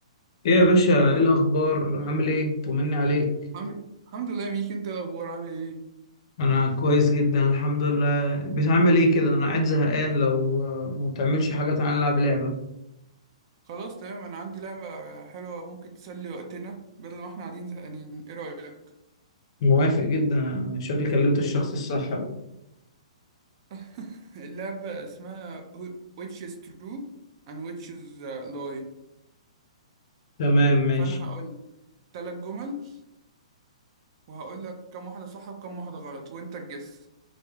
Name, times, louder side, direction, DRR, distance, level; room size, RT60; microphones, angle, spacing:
voice 1, 0.4-3.3 6.4-12.5 19.6-22.3 30.4-31.2, left 1 dB, 55° left, 2 dB, 0.5 m, -22 dB
voice 2, 3.5-5.8 13.7-18.8 23.7-27.1 27.5-28.9 31.0-31.5 32.1-33.0 34.3-37.1, right 4 dB, 50° right, 4 dB, 0.5 m, -37 dB
2.2 x 2.0 x 3.0 m, 0.88 s
hypercardioid pair, 125°, 3 cm